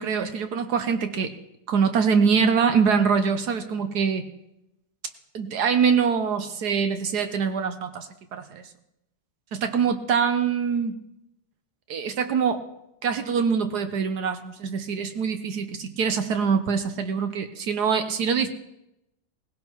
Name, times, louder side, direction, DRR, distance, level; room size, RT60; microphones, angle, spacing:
voice 1, 0.0-1.4 1.7-4.3 5.3-8.7 9.5-11.0 11.9-12.6 13.0-18.5, right 6 dB, 65° right, 8 dB, 1.2 m, -24 dB
18.5 x 16.5 x 3.0 m, 0.85 s
omnidirectional pair, 1.9 m